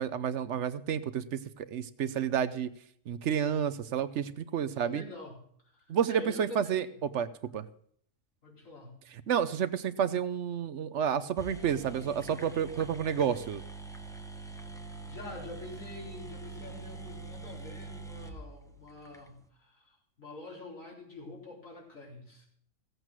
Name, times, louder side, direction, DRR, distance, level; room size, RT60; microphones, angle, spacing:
voice 1, 0.0-2.7 3.1-5.0 5.9-6.9 7.1-7.3 7.5-7.7 9.3-13.6, right 8 dB, 65° right, 14 dB, 1.0 m, -30 dB
voice 2, 4.7-7.0 8.4-8.9 15.1-22.5, left 2 dB, 85° left, -3 dB, 4.4 m, -46 dB
sound 1, 11.1-11.2 11.4-19.2, right 3 dB, 5° left, 0.9 m, -44 dB
15.5 x 8.1 x 6.1 m, 0.64 s
omnidirectional pair, 1.3 m